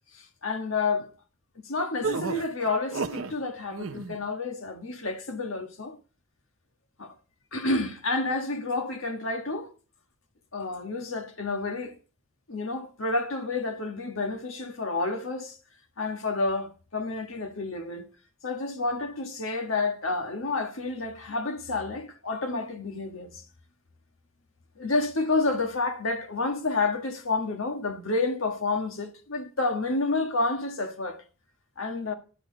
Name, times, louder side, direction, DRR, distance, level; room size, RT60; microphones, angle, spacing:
voice 1, 0.1-1.1 1.6-5.9 7.0-7.1 7.5-9.7 10.5-11.9 12.5-15.6 16.0-18.1 18.4-23.3 24.8-31.2 31.8-32.1, left 3 dB, 80° left, 1.6 m, -29 dB
sound 1, 2.0-3.3 3.7-4.2, right 4 dB, 75° right, 0.8 m, -32 dB
11.0 x 8.6 x 3.9 m
head